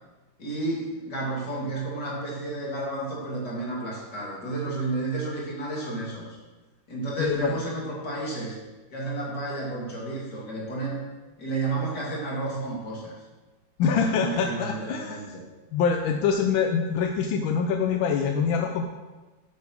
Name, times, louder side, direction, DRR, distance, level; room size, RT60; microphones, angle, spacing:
voice 1, 0.4-6.4 6.9-8.6 8.9-11.1 11.4-13.1 13.9-15.4, right 2 dB, 55° left, -4 dB, 3.0 m, -31 dB
voice 2, 7.2-7.6 13.8-15.3 15.7-18.8, left 6 dB, 85° left, 4 dB, 1.5 m, -25 dB
7.6 x 7.4 x 6.1 m, 1.2 s
omnidirectional pair, 2.1 m